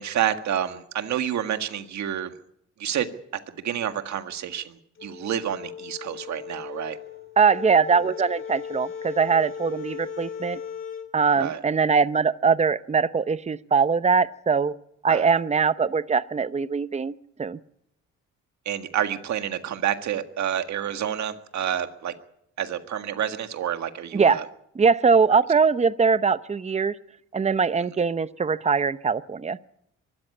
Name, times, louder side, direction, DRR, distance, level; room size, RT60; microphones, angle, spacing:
voice 1, 0.0-2.3 2.8-3.1 3.5-7.0 8.0-8.1 11.4-11.6 15.1-15.3 18.7-22.1 22.6-24.5, right 10 dB, 65° right, 8 dB, 1.8 m, -29 dB
sound 1, 4.9-11.1, left 7 dB, 40° left, 2.6 m, -37 dB
voice 2, 7.4-10.6 11.1-14.7 15.0-17.1 17.4-17.6 24.1-24.4 24.8-26.9 27.3-29.6, right 5 dB, 20° right, 14 dB, 0.8 m, -22 dB
23.5 x 13.5 x 8.5 m, 0.75 s
cardioid pair, 90°, 30 cm